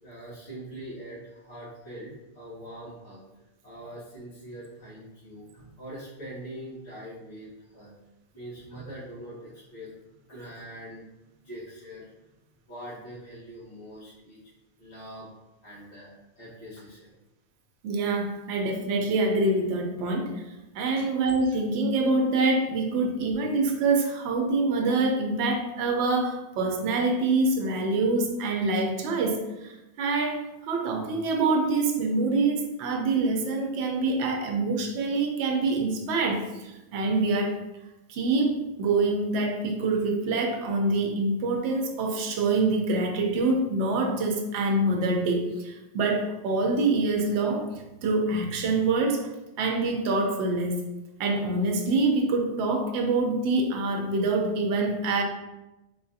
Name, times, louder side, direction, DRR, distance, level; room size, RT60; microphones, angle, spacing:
voice 1, 0.0-3.2 3.6-7.9 8.3-9.9 10.3-11.0 11.4-12.1 12.7-14.5 14.8-15.3 15.6-17.1 20.9-21.0, right 1 dB, 65° left, -11 dB, 1.5 m, -43 dB
voice 2, 17.8-20.4 20.7-37.6 38.1-47.7 48.0-49.3 49.6-50.9 51.2-55.2, right 3 dB, 70° right, 2 dB, 0.8 m, -25 dB
3.7 x 2.4 x 2.6 m, 0.98 s
omnidirectional pair, 1.2 m